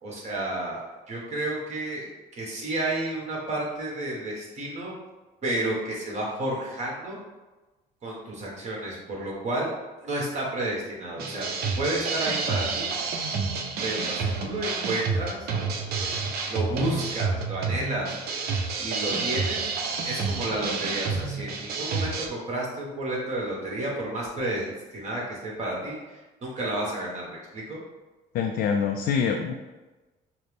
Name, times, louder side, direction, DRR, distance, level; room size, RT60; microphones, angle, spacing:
voice 1, 0.0-4.9 5.4-7.2 8.0-9.7 10.0-11.4 11.8-12.9 13.8-15.5 16.5-18.2 18.8-19.7 20.0-27.8, right 1 dB, 40° right, -3 dB, 1.4 m, -31 dB
sound 1, 11.2-22.3, right 4 dB, 65° right, 0.6 m, -29 dB
voice 2, 28.3-29.5, left 6 dB, 65° left, 3 dB, 0.4 m, -25 dB
5.7 x 2.1 x 3.4 m, 1.2 s
cardioid pair, 110°, 17 cm